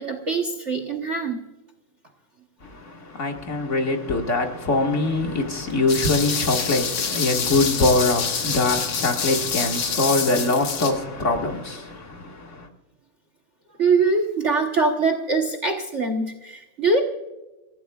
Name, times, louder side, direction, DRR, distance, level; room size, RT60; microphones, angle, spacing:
voice 1, 0.0-1.5 13.8-17.0, right 3 dB, 40° right, 1.2 m, -23 dB
voice 2, 2.6-12.7, left 2 dB, 35° left, 2.0 m, -23 dB
sound 1, 5.9-10.9, left 6 dB, 85° left, 2.4 m, -27 dB
26.5 x 16.0 x 2.4 m
omnidirectional pair, 2.3 m